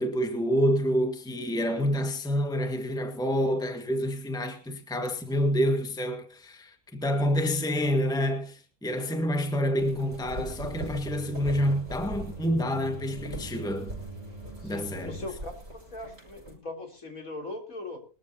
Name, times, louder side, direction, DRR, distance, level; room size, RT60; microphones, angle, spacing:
voice 1, 0.0-13.9 14.6-15.2, equal, 5° left, 1.6 m, -28 dB
sound 1, 9.8-16.5, right 1 dB, 45° right, 5.8 m, -42 dB
sound 2, 10.1-15.3, right 3 dB, 25° right, 2.6 m, -43 dB
voice 2, 14.6-18.0, left 2 dB, 65° left, 3.9 m, -40 dB
22.0 x 13.0 x 2.8 m
omnidirectional pair, 1.6 m